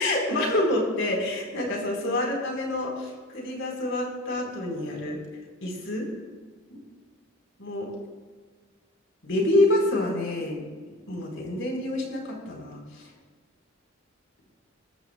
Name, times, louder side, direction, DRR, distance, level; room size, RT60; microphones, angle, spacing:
voice 1, 0.0-5.2 5.6-6.1 7.6-7.9 9.2-10.6 11.1-13.1, left 1 dB, 65° left, 0 dB, 4.1 m, -27 dB
20.5 x 14.5 x 2.3 m, 1.5 s
head